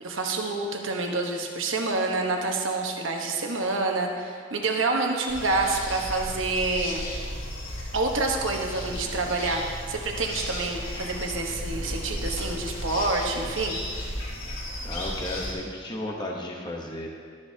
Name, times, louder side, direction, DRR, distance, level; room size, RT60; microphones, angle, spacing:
voice 1, 0.0-7.1 7.9-13.8 14.0-14.1, right 3 dB, 70° right, 2 dB, 1.1 m, -27 dB
sound 1, 5.3-15.5, left 1 dB, 80° left, 2.9 m, -34 dB
voice 2, 14.8-17.1, left 1 dB, 20° left, -1 dB, 0.9 m, -34 dB
12.5 x 10.5 x 2.8 m, 2.1 s
head